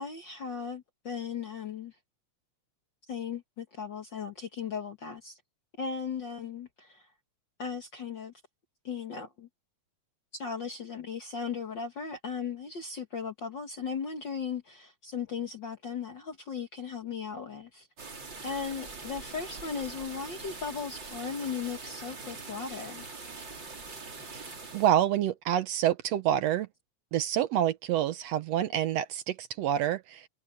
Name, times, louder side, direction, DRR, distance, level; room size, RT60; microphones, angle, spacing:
voice 1, 0.0-1.9 3.1-5.4 5.8-7.1 7.6-8.3 8.8-9.5 10.3-17.9 18.4-23.0, left 6 dB, 45° left, 1.7 m, -37 dB
sound 1, 18.0-24.9, right 4 dB, 35° right, 4.0 m, -43 dB
voice 2, 24.7-26.7 27.1-30.3, right 11 dB, 70° right, 1.7 m, -27 dB
omnidirectional pair, 3.5 m